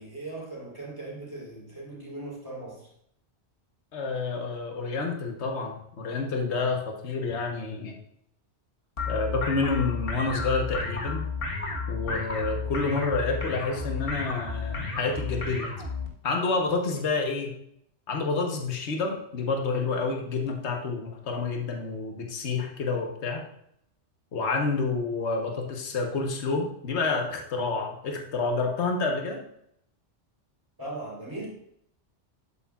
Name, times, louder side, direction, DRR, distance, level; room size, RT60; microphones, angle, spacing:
voice 1, 0.0-2.9 30.8-31.5, right 2 dB, 15° right, -4 dB, 3.8 m, -39 dB
voice 2, 3.9-8.0 9.1-11.3 11.9-15.7 16.2-17.6 18.1-23.5 24.3-29.4, left 4 dB, 70° left, 2 dB, 1.4 m, -29 dB
sound 1, 9.0-16.1, left 4 dB, 50° left, 1.6 m, -32 dB
11.0 x 8.4 x 2.4 m, 0.72 s
omnidirectional pair, 1.2 m